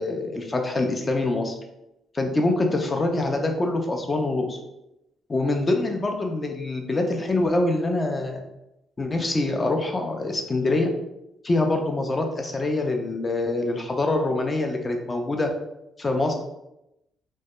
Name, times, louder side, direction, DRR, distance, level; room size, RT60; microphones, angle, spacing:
voice 1, 0.0-1.5 2.1-4.6 5.3-8.4 9.0-10.9 11.4-15.5 16.0-16.3, left 2 dB, 30° left, 3 dB, 0.4 m, -25 dB
2.2 x 2.1 x 2.9 m, 0.87 s
cardioid pair, 90°, 0 cm